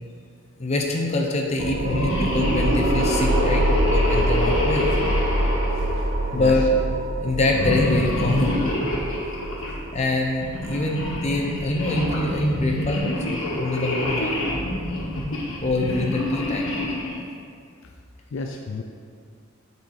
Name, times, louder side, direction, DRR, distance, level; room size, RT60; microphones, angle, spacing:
voice 1, 0.6-3.6 3.9-4.9 6.3-6.7 7.2-8.7 9.9-14.4 15.6-16.7, left 2 dB, 35° left, 0 dB, 0.7 m, -24 dB
sound 1, 1.6-12.6, equal, 30° right, 0.3 m, -26 dB
sound 2, 1.8-6.6 7.5-9.8 10.4-17.2, left 1 dB, 85° left, 1.3 m, -27 dB
voice 2, 5.7-6.1 6.3-6.5 9.5-9.6 14.4-14.5 18.3-18.8, left 4 dB, 65° left, 3 dB, 0.4 m, -33 dB
6.7 x 4.1 x 4.7 m, 2.2 s
head